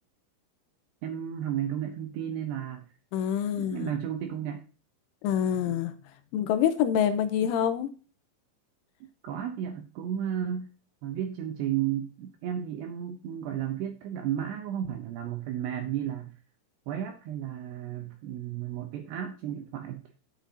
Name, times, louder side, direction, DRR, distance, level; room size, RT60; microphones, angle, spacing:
voice 1, 1.0-2.8 3.5-4.6 5.7-5.8 9.2-10.7 11.0-16.3 16.9-20.0, right 10 dB, 80° right, 5 dB, 2.5 m, -33 dB
voice 2, 3.1-3.9 5.2-5.9 6.3-7.9, left 9 dB, 85° left, 10 dB, 3.2 m, -26 dB
10.5 x 8.2 x 2.8 m, 0.35 s
omnidirectional pair, 5.6 m